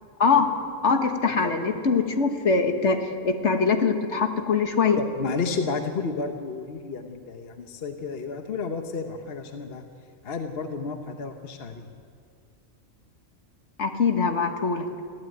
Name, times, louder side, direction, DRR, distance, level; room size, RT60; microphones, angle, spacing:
voice 1, 0.8-5.0 13.8-14.9, left 5 dB, 70° left, 6 dB, 1.8 m, -23 dB
voice 2, 5.0-9.8 10.2-11.9, left 4 dB, 55° left, 6 dB, 1.3 m, -31 dB
22.0 x 15.0 x 9.2 m, 2.2 s
omnidirectional pair, 1.3 m